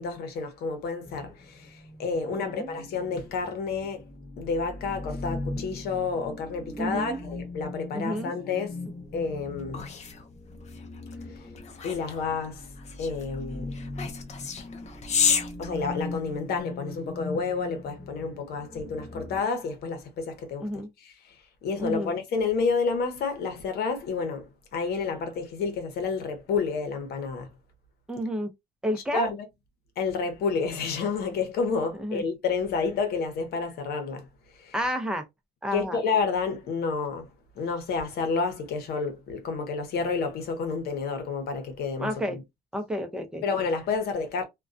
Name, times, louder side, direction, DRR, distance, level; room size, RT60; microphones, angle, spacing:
voice 1, 0.0-4.0 4.4-8.8 9.1-9.9 11.3-11.4 11.8-12.7 13.0-13.8 15.6-20.7 21.0-21.3 21.6-27.5 29.1-29.4 30.0-34.3 34.6-34.7 35.7-37.3 37.6-42.4 43.4-44.4, left 4 dB, 70° left, 0.9 m, -30 dB
sound 1, 1.0-19.4, left 2 dB, 20° left, 1.1 m, -40 dB
voice 2, 2.3-2.7 6.8-7.2 7.9-8.3 20.6-20.9 21.8-22.1 28.1-28.5 28.8-29.3 32.0-32.2 34.7-35.2 35.6-36.0 42.0-42.4 42.7-43.4, equal, 5° right, 0.6 m, -30 dB
sound 2, 9.1-16.6, left 6 dB, 40° left, 0.6 m, -32 dB
2.2 x 2.2 x 2.5 m
cardioid pair, 110°, 17 cm